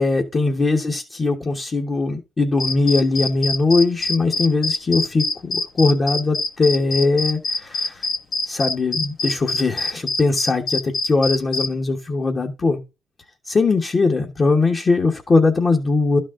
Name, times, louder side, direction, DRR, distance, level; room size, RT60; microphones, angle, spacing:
voice 1, 0.0-8.1 8.5-12.8 13.5-16.2, left 3 dB, 35° left, 1.3 m, -20 dB
sound 1, 2.6-11.7, left 2 dB, 60° left, 1.4 m, -24 dB
12.0 x 4.2 x 3.7 m
cardioid pair, 90°, 0 cm